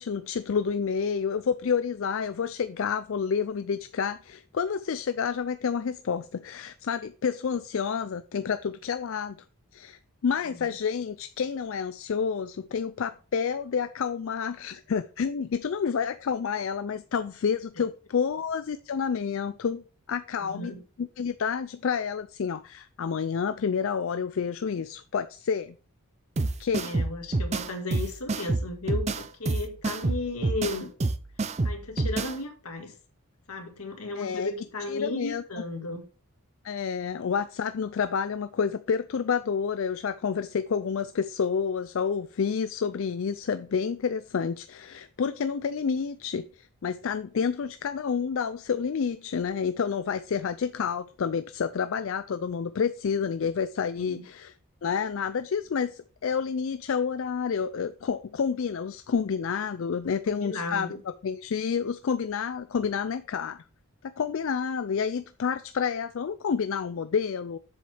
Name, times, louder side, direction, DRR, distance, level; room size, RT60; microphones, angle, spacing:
voice 1, 0.0-9.4 9.7-20.7 21.0-25.8 26.6-26.9 34.2-34.5 34.9-35.4 36.6-54.5 54.8-60.9 61.2-63.6 64.0-67.6, left 6 dB, 60° left, 0.4 m, -29 dB
voice 2, 20.4-20.8 26.8-30.9 31.6-32.9 33.5-36.1 54.0-54.2 60.3-61.0, left 2 dB, 80° left, 1.9 m, -35 dB
sound 1, 26.4-32.4, right 2 dB, 30° right, 0.5 m, -28 dB
7.6 x 7.1 x 3.4 m
head